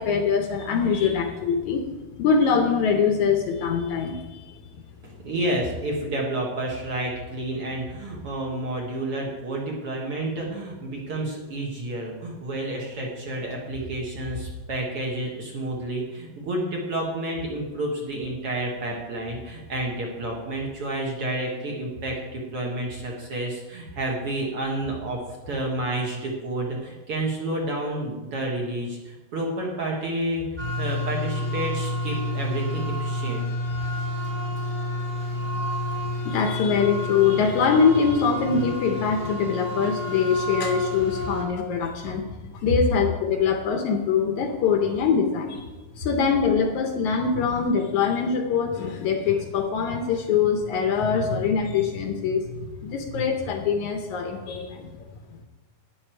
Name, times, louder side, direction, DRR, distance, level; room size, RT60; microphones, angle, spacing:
voice 1, 0.0-1.8 2.2-4.5 36.3-42.2 42.5-45.7 46.0-52.4 52.8-54.9, left 6 dB, 70° left, 5 dB, 2.0 m, -23 dB
voice 2, 5.0-25.2 25.5-33.4, right 1 dB, 50° right, -2 dB, 2.0 m, -30 dB
sound 1, 30.6-41.4, left 1 dB, 20° right, 1.0 m, -29 dB
11.5 x 9.9 x 4.5 m, 1.2 s
omnidirectional pair, 4.0 m